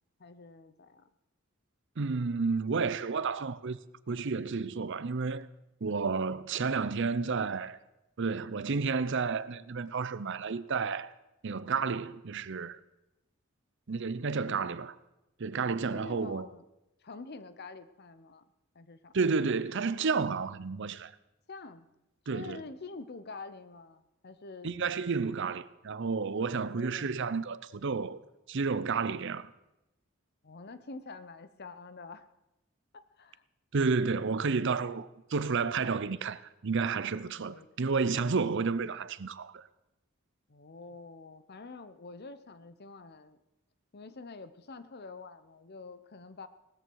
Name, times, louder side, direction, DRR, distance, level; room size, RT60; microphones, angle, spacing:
voice 1, 0.2-1.1 14.3-14.8 15.9-16.6 17.0-18.4 18.7-19.1 21.5-21.9 22.3-24.8 26.5-27.1 30.4-32.3 32.9-33.4 37.4-37.9 40.5-43.4 43.9-46.5, left 3 dB, 50° left, 0.8 m, -47 dB
voice 2, 2.0-3.8 4.1-5.5 5.8-7.8 8.2-11.1 11.4-12.8 13.9-14.9 15.4-16.5 19.1-21.1 22.3-22.6 24.6-28.2 28.5-29.5 33.7-39.6, right 4 dB, 60° right, 0.6 m, -31 dB
18.5 x 14.0 x 4.7 m
head